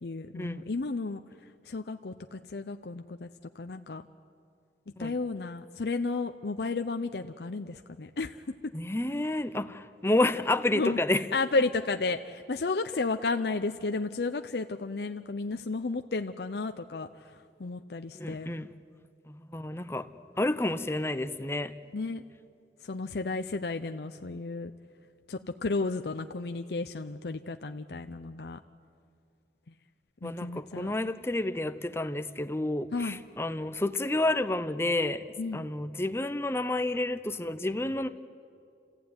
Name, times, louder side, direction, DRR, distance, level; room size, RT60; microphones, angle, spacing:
voice 1, 0.0-1.2 1.6-3.3 3.6-4.0 5.0-8.4 10.7-11.0 11.3-17.3 17.6-18.5 21.9-22.2 22.8-24.7 25.3-28.6 30.2-30.9 32.9-33.2 35.4-35.7, left 3 dB, 65° left, 7 dB, 0.6 m, -33 dB
voice 2, 8.7-11.2 18.2-18.7 19.3-20.1 20.4-21.7 30.2-35.2 35.5-38.1, left 2 dB, 15° left, 11 dB, 0.6 m, -30 dB
30.0 x 15.0 x 9.5 m, 2.4 s
head